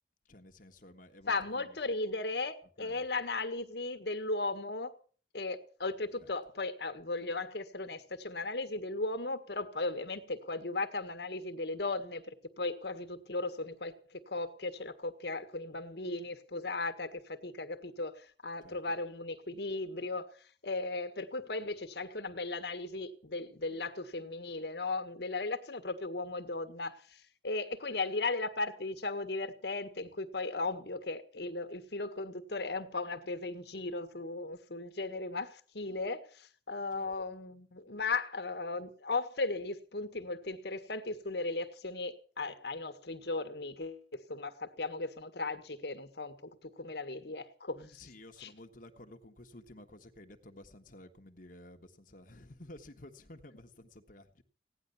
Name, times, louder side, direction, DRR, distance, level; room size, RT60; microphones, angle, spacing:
voice 1, 0.2-1.8 2.8-3.1 6.2-6.3 18.6-18.8 36.9-37.1 47.7-54.4, left 1 dB, 50° left, 1.4 m, -53 dB
voice 2, 1.3-4.9 5.3-20.3 20.6-44.0 44.3-47.8 48.4-48.5, left 3 dB, 65° left, 1.6 m, -36 dB
16.5 x 10.5 x 7.0 m
head